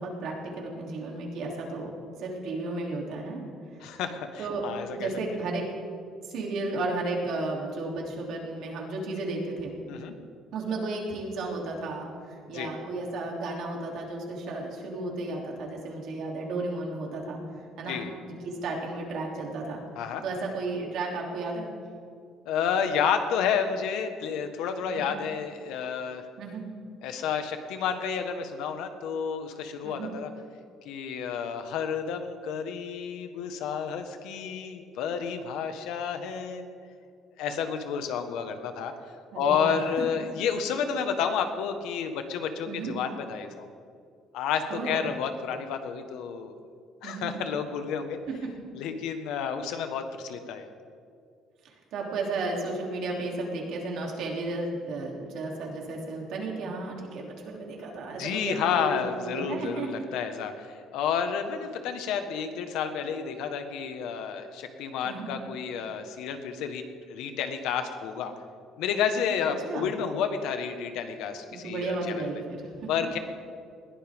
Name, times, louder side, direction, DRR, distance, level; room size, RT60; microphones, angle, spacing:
voice 1, 0.0-1.9 2.2-3.5 4.4-4.6 4.9-5.6 6.2-9.8 10.5-19.8 20.2-21.7 24.8-25.1 26.4-26.6 29.8-30.1 39.3-39.8 42.7-42.9 44.7-45.1 47.0-47.3 51.6-58.9 59.2-60.0 65.0-65.3 69.6-69.9 71.5-72.9, right 2 dB, 55° right, -1 dB, 3.1 m, -33 dB
voice 2, 3.8-5.1 9.9-10.1 12.5-12.7 17.9-18.1 20.0-20.2 22.4-26.2 27.0-30.3 30.8-36.7 37.4-38.9 39.3-43.7 44.3-46.5 47.0-48.2 48.7-50.6 58.2-68.3 68.8-72.3 72.9-73.2, left 7 dB, 80° left, 7 dB, 1.4 m, -30 dB
21.0 x 15.5 x 3.7 m, 2.3 s
cardioid pair, 180°, 0 cm